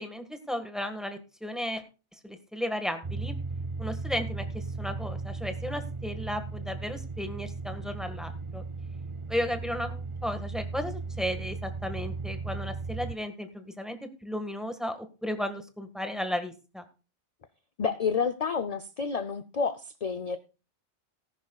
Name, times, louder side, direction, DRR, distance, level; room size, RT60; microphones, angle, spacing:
voice 1, 0.0-1.8 2.2-3.4 3.8-8.6 9.3-16.8, equal, ahead, 7 dB, 1.5 m, -34 dB
sound 1, 3.0-13.2, right 3 dB, 35° right, 0.6 m, -36 dB
voice 2, 17.8-20.4, left 5 dB, 40° left, 11 dB, 0.6 m, -29 dB
18.5 x 10.5 x 2.4 m, 0.32 s
omnidirectional pair, 1.2 m